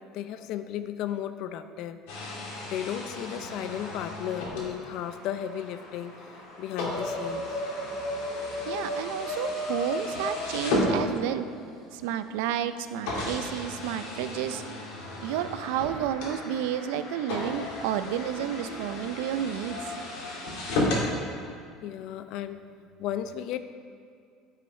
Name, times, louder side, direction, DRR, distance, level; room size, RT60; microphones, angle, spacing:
voice 1, 0.0-2.0 2.6-6.3 6.6-7.6 17.5-17.6 21.8-22.7 23.0-23.6, left 10 dB, 55° left, 11 dB, 0.4 m, -34 dB
sound 1, 2.1-11.6 12.3-12.4 13.1-21.1, left 1 dB, 80° left, 2.5 m, -33 dB
sound 2, 8.3-9.9 10.2-11.1 11.4-12.8 13.1-14.7 15.1-16.6, right 1 dB, 20° right, 1.6 m, -52 dB
voice 2, 8.6-11.5 11.9-14.6 15.2-19.8, right 10 dB, 85° right, 11 dB, 0.4 m, -31 dB
9.9 x 5.7 x 5.2 m, 2.3 s
cardioid pair, 155°, 0 cm